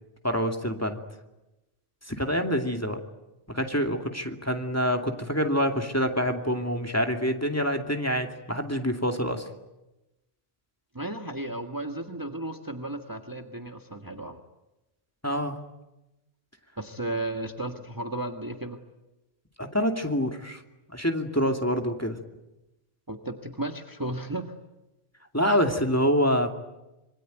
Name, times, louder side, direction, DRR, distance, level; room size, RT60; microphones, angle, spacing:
voice 1, 0.2-1.0 2.1-3.0 3.5-9.4 15.2-15.6 19.6-20.6 20.9-22.2 25.3-26.5, equal, 15° left, 4 dB, 2.5 m, -26 dB
voice 2, 10.9-14.4 16.8-18.8 23.1-24.5, right 1 dB, 15° right, 5 dB, 1.7 m, -34 dB
26.5 x 23.5 x 9.2 m, 0.99 s
omnidirectional pair, 1.2 m